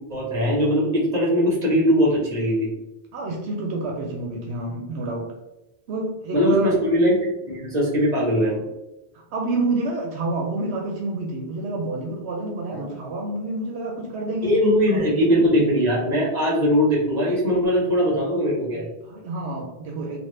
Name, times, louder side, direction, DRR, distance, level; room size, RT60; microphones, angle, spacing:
voice 1, 0.0-2.7 6.3-8.6 12.8-12.9 14.4-18.8, equal, 40° right, -4 dB, 1.2 m, -20 dB
voice 2, 3.1-5.3 5.9-6.7 9.1-15.6 18.7-20.2, right 2 dB, 85° right, 0 dB, 0.9 m, -29 dB
3.4 x 2.2 x 3.1 m, 0.95 s
omnidirectional pair, 1.1 m